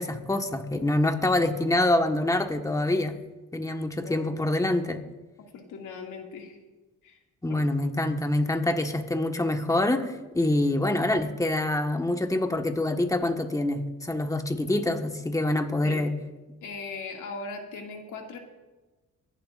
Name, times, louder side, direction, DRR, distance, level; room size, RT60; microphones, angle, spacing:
voice 1, 0.0-3.1 3.5-5.0 7.4-16.1, left 1 dB, 10° left, 5 dB, 1.3 m, -26 dB
voice 2, 4.0-4.4 5.5-6.6 7.0-7.2 7.5-7.6 15.8-16.0 16.6-18.4, left 4 dB, 80° left, 1 dB, 2.3 m, -39 dB
24.5 x 11.5 x 2.5 m, 1.2 s
cardioid pair, 90°, 30 cm